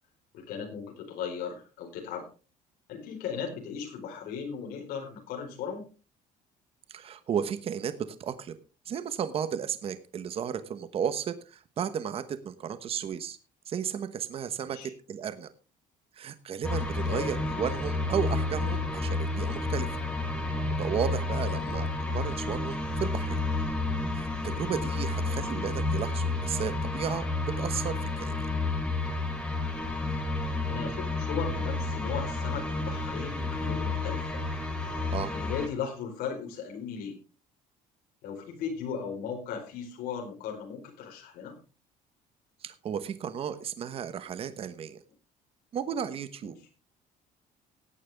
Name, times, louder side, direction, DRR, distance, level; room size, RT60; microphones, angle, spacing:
voice 1, 0.3-2.3 2.9-5.8 14.6-14.9 17.0-17.3 21.5-21.8 25.3-25.5 30.7-34.4 35.3-37.2 38.2-41.6 46.4-46.5, left 7 dB, 85° left, 1 dB, 4.4 m, -37 dB
voice 2, 6.9-8.6 8.8-13.4 13.7-15.5 16.2-19.9 20.8-23.4 24.1-27.3 27.6-28.5 35.1-35.3 42.6-45.0 45.7-46.5, right 8 dB, 40° right, 12 dB, 1.1 m, -34 dB
sound 1, 16.6-35.7, left 2 dB, 5° left, 3.0 m, -31 dB
17.0 x 9.4 x 3.5 m, 0.34 s
cardioid pair, 150°, 15 cm